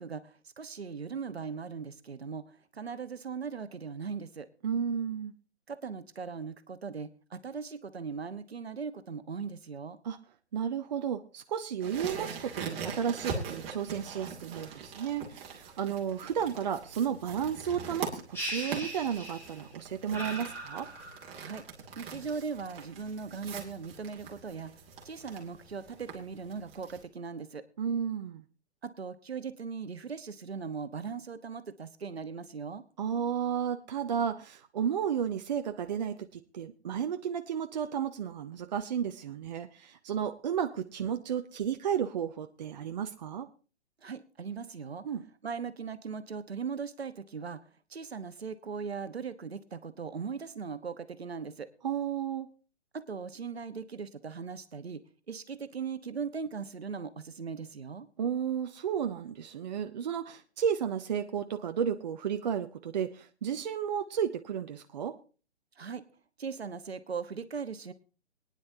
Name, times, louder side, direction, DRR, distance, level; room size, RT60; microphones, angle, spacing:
voice 1, 0.0-4.5 5.7-10.0 21.4-21.6 22.0-24.7 25.0-27.6 28.8-32.8 44.0-45.0 45.4-47.6 47.9-51.7 52.9-55.0 55.3-58.1 65.8-66.0 66.4-67.9, right 5 dB, 65° right, 11 dB, 1.2 m, -39 dB
voice 2, 4.6-5.3 10.0-10.2 10.5-20.9 27.8-28.4 33.0-43.5 45.0-45.2 51.8-52.5 58.2-65.2, right 8 dB, 40° right, 7 dB, 0.7 m, -33 dB
sound 1, 11.8-27.0, right 5 dB, 15° right, 2.2 m, -42 dB
sound 2, 18.3-19.7 20.1-21.4, right 1 dB, 5° left, 3.1 m, -39 dB
22.5 x 9.9 x 2.7 m, 0.36 s
figure-of-eight pair, 125°, 33 cm